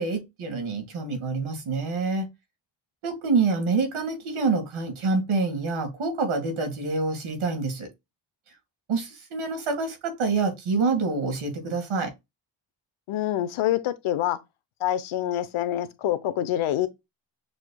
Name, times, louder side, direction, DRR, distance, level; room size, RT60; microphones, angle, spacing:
voice 1, 0.0-2.3 3.0-7.9 8.9-12.1, right 4 dB, 80° right, 1.9 m, -26 dB
voice 2, 13.1-14.4 14.8-16.9, left 12 dB, 85° left, 0.8 m, -26 dB
6.4 x 3.0 x 2.3 m
cardioid pair, 90°, 48 cm